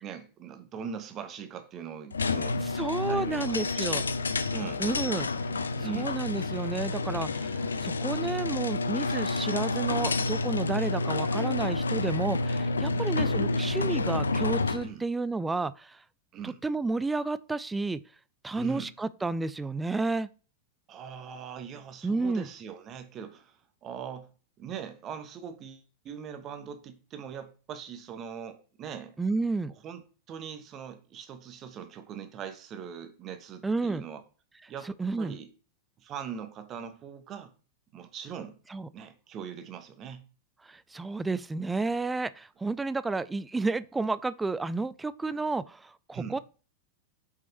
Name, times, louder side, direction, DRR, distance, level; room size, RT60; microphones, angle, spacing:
voice 1, 0.0-2.6 3.1-4.1 4.5-4.8 5.8-6.1 12.9-13.1 14.8-15.0 16.3-16.6 18.5-18.9 20.9-24.3 24.6-29.2 29.8-30.0 30.3-34.2 34.7-34.9 35.2-35.5 36.0-37.5 37.9-38.6 38.9-40.3 46.1-46.4, right 7 dB, 30° right, 1.1 m, -41 dB
sound 1, 2.1-14.9, left 3 dB, 75° left, 0.5 m, -29 dB
voice 2, 2.6-4.0 4.8-5.3 5.9-16.0 16.4-18.0 18.4-20.3 22.0-22.5 29.2-29.7 33.6-34.0 34.9-35.3 38.7-38.9 40.6-46.4, right 3 dB, 10° right, 0.4 m, -31 dB
6.0 x 5.3 x 4.4 m
figure-of-eight pair, 90°, 0 cm